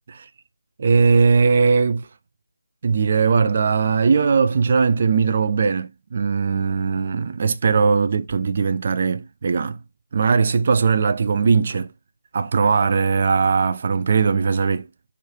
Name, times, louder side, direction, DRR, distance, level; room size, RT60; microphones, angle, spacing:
voice 1, 0.8-2.1 2.8-9.8 10.1-11.9 12.3-14.9, right 5 dB, 40° right, 0.3 m, -19 dB
4.6 x 2.5 x 2.8 m
figure-of-eight pair, 160°, 0 cm